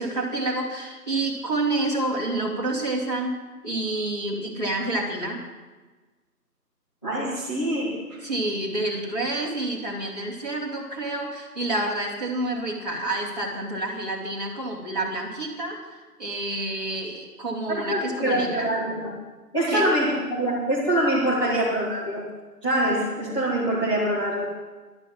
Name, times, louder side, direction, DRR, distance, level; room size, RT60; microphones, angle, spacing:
voice 1, 0.0-3.3 3.6-5.4 8.2-15.8 16.2-18.7 19.7-19.9, right 2 dB, 25° right, -6 dB, 2.1 m, -28 dB
voice 2, 7.0-8.2 17.7-19.1 19.5-22.3 22.6-24.5, right 1 dB, 20° left, -11 dB, 1.9 m, -24 dB
11.5 x 9.5 x 7.5 m, 1.3 s
figure-of-eight pair, 180°, 48 cm